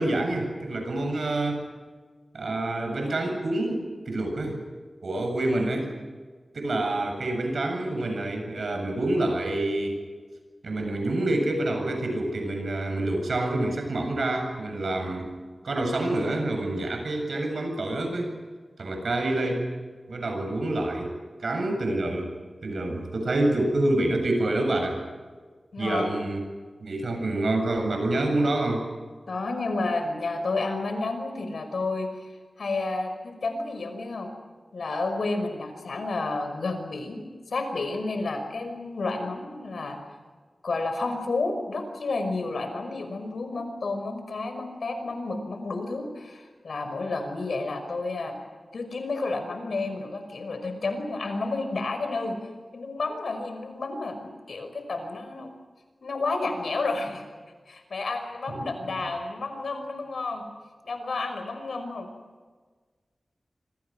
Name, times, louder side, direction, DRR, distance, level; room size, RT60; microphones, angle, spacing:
voice 1, 0.0-1.6 2.3-4.6 5.0-5.9 6.5-10.0 10.6-15.3 15.6-18.3 18.8-19.7 20.1-21.1 21.4-22.3 22.6-25.0 25.8-26.4 26.8-28.9 58.5-58.6 59.0-59.1, right 2 dB, 75° right, 4 dB, 7.8 m, -27 dB
voice 2, 25.7-26.1 29.3-34.3 34.7-37.2 37.5-40.0 40.6-48.4 48.7-52.4 52.7-55.5 56.0-57.2 57.7-60.5 60.8-62.1, left 3 dB, 85° left, 6 dB, 5.6 m, -31 dB
27.5 x 26.0 x 6.2 m, 1.4 s
wide cardioid pair, 105°, 0 cm